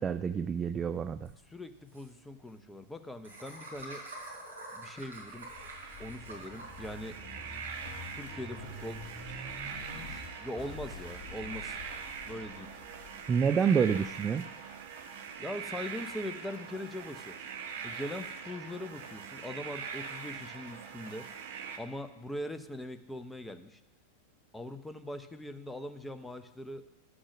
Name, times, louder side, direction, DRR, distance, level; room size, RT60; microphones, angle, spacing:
voice 1, 0.0-1.3 13.3-14.5, right 6 dB, 20° right, 13 dB, 0.3 m, -28 dB
Laughter, 1.2-1.3 1.6-1.7 1.9-2.1 3.2-6.9, right 2 dB, 70° right, 4.4 m, -46 dB
voice 2, 1.5-4.1 4.7-5.5 6.0-7.2 8.1-9.0 10.4-11.8 12.2-12.7 15.4-17.4 17.8-21.3 21.8-23.8 24.5-26.8, left 1 dB, 5° left, 9 dB, 0.7 m, -41 dB
sound 1, 5.2-15.8 16.3-17.4, left 3 dB, 25° left, 1.5 m, -48 dB
sound 2, 5.2-21.8, right 6 dB, 55° right, 1.1 m, -43 dB
11.5 x 6.3 x 6.2 m, 0.98 s
figure-of-eight pair, 90°, 0 cm